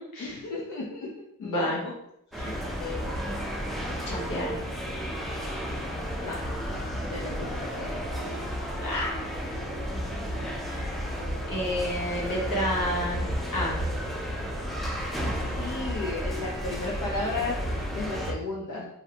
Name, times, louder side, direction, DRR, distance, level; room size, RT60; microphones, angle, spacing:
voice 1, 0.2-1.1 1.4-1.7 2.8-3.0 6.2-6.4 7.1-8.0 15.6-17.5 17.9-18.9, left 3 dB, 65° left, -3 dB, 0.5 m, -34 dB
voice 2, 1.4-1.8 2.4-2.6 4.1-4.6 8.8-9.1 10.6-10.9 11.5-13.2 13.5-13.7, left 1 dB, 85° left, -4 dB, 1.0 m, -30 dB
sound 1, 2.3-18.3, equal, ahead, 0.5 m, -32 dB
2.6 x 2.0 x 2.8 m, 0.77 s
wide cardioid pair, 100°, 33 cm